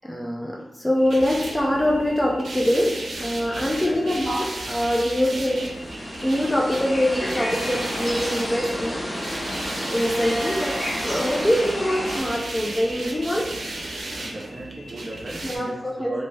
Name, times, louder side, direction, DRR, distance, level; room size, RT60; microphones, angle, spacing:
voice 1, 0.0-9.1 9.6-13.6 15.4-16.2, equal, 10° left, -1 dB, 0.3 m, -24 dB
sound 1, 1.0-15.6, right 2 dB, 85° right, 0.5 m, -34 dB
voice 2, 3.8-4.2 14.2-16.3, right 1 dB, 35° right, -1 dB, 0.6 m, -37 dB
sound 2, 5.4-12.2, equal, 40° left, 0.9 m, -31 dB
2.8 x 2.1 x 3.2 m, 0.89 s
wide cardioid pair, 115°, 0 cm